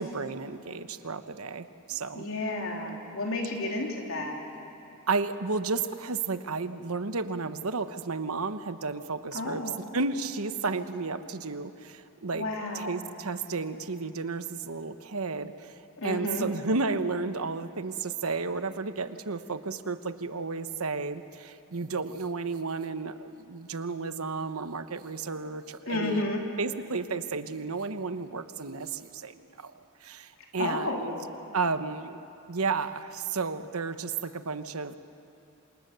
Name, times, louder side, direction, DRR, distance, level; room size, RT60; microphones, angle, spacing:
voice 1, 0.0-2.3 5.1-9.6 9.9-12.5 12.7-15.7 16.0-26.3 26.6-31.1 31.5-32.2 32.5-34.9, right 4 dB, 85° right, 10 dB, 1.1 m, -32 dB
voice 2, 1.9-4.4 9.3-9.8 12.3-13.1 16.0-16.5 25.9-26.5 30.6-31.2, left 2 dB, 70° left, 0 dB, 3.5 m, -32 dB
27.5 x 27.0 x 6.9 m, 3.0 s
head